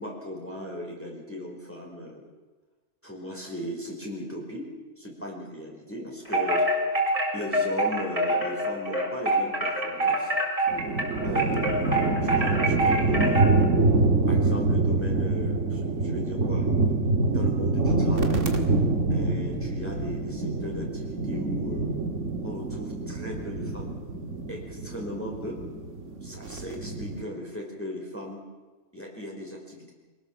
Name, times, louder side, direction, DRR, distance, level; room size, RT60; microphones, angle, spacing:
voice 1, 0.0-2.3 3.0-6.6 7.3-10.3 11.2-13.8 14.3-16.7 17.3-18.5 19.1-21.9 22.4-23.9 24.5-25.6 26.2-28.4 28.9-29.9, left 1 dB, 10° left, -1 dB, 5.0 m, -37 dB
Wind chime, 6.2-13.6, right 1 dB, 20° right, 4.9 m, -25 dB
sound 1, 10.7-27.2, right 3 dB, 55° right, 2.2 m, -26 dB
25.5 x 19.0 x 7.4 m, 1.3 s
omnidirectional pair, 1.6 m